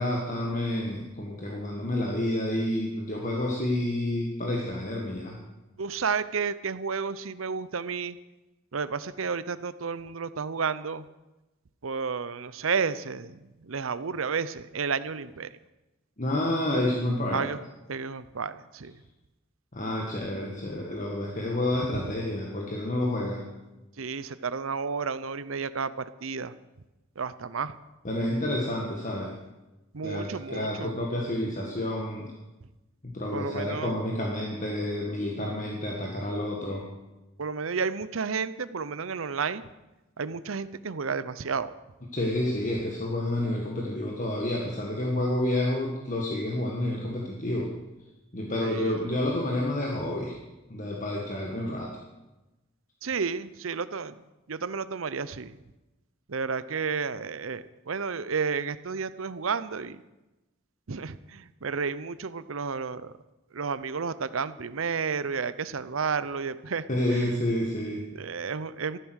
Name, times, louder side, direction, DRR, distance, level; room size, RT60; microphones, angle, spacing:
voice 1, 0.0-5.4 16.2-17.4 19.7-23.5 28.0-29.4 30.0-32.3 33.0-36.9 42.1-47.7 48.3-50.3 50.7-51.9 66.9-68.0, left 1 dB, 40° left, -1 dB, 1.8 m, -29 dB
voice 2, 5.8-8.2 8.7-11.0 11.8-15.5 17.3-17.6 17.9-18.9 21.9-22.0 24.0-25.9 26.2-26.5 27.2-27.7 29.9-30.9 33.3-34.0 37.4-39.7 40.2-41.7 48.5-49.0 53.0-54.1 54.5-55.6 56.3-60.0 60.9-63.1 63.5-67.3 68.1-69.0, right 5 dB, 80° right, 15 dB, 0.7 m, -31 dB
14.5 x 12.5 x 6.4 m, 1.0 s
head